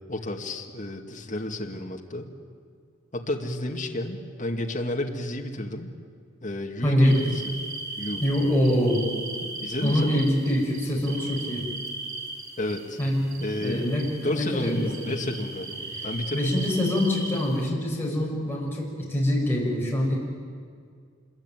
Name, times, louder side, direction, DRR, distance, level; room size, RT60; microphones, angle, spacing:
voice 1, 0.1-2.3 3.1-5.9 6.4-7.5 8.0-8.2 9.6-10.1 12.6-13.0 13.4-13.9 14.2-16.5, left 1 dB, 35° left, 1 dB, 2.3 m, -31 dB
voice 2, 6.8-7.2 8.2-9.1 9.4-9.5 9.8-11.7 13.0-13.2 13.6-15.1 15.9-20.1, left 1 dB, 10° left, -4 dB, 6.7 m, -25 dB
sound 1, 7.0-17.7, right 3 dB, 80° right, 3.7 m, -38 dB
26.5 x 22.5 x 9.3 m, 2.1 s
head